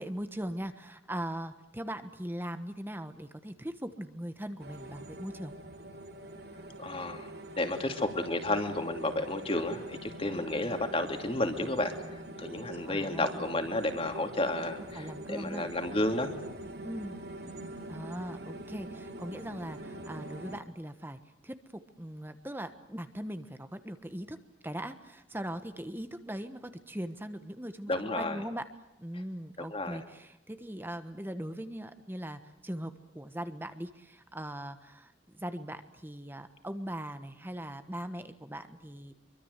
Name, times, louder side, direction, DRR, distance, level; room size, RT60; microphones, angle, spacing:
voice 1, 0.0-5.5 12.9-13.6 14.9-15.7 16.8-17.2 17.9-21.6 22.0-24.4 24.6-28.7 29.0-39.1, right 1 dB, 10° right, 10 dB, 1.2 m, -40 dB
sound 1, 4.6-20.6, right 1 dB, 55° right, 2.5 m, -44 dB
voice 2, 6.8-7.3 7.6-16.3 27.9-28.4 29.7-30.0, left 2 dB, 30° left, 6 dB, 2.7 m, -32 dB
25.5 x 24.0 x 8.2 m, 0.89 s
head